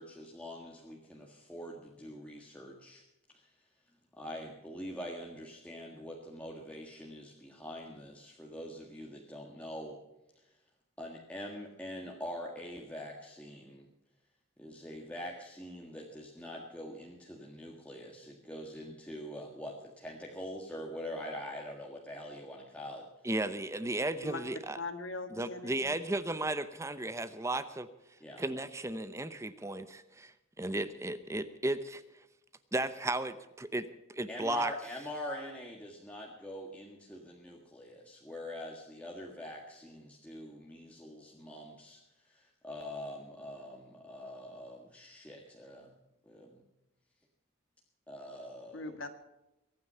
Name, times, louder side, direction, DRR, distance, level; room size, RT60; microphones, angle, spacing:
voice 1, 0.0-3.0 3.3-3.4 4.2-10.0 11.0-13.9 14.6-23.1 28.2-28.4 34.3-42.0 42.3-45.9 46.3-46.6 48.1-48.9, left 1 dB, 5° left, -1 dB, 1.7 m, -44 dB
voice 2, 23.2-24.8 25.4-27.9 28.4-32.0 32.7-34.7, right 2 dB, 15° right, 12 dB, 0.8 m, -35 dB
voice 3, 24.8-26.0 48.7-49.1, left 3 dB, 60° left, 7 dB, 1.7 m, -40 dB
23.0 x 9.6 x 5.6 m, 0.95 s
head